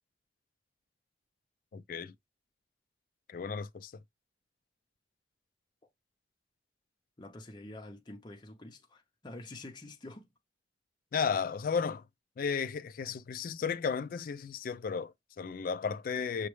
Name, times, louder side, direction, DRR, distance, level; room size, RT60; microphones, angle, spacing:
voice 1, 1.7-2.1 3.3-3.9 11.1-12.0 12.4-16.5, left 6 dB, 50° left, 0.3 m, -34 dB
voice 2, 7.2-10.3, left 2 dB, 25° left, 0.7 m, -47 dB
6.1 x 2.1 x 3.1 m
head